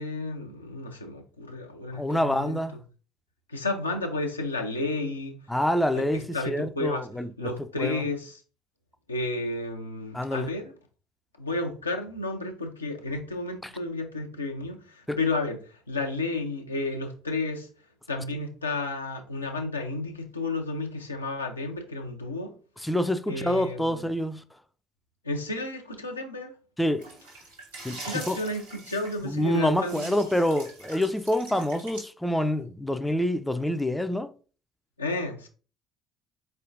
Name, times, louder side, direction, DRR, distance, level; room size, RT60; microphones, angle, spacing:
voice 1, 0.0-2.6 3.5-5.3 5.9-7.1 7.4-8.4 9.1-10.6 11.4-17.7 18.1-22.5 23.3-24.1 25.2-26.5 28.0-30.2 35.0-35.5, left 2 dB, 85° left, 0.5 m, -32 dB
voice 2, 1.9-2.8 5.5-8.0 10.1-10.5 15.1-15.2 22.8-24.4 26.8-27.0 27.8-28.4 29.2-34.3, left 1 dB, 5° left, 0.4 m, -27 dB
sound 1, 27.0-32.0, right 2 dB, 80° right, 1.5 m, -44 dB
4.2 x 3.3 x 2.5 m
figure-of-eight pair, 55°, 0 cm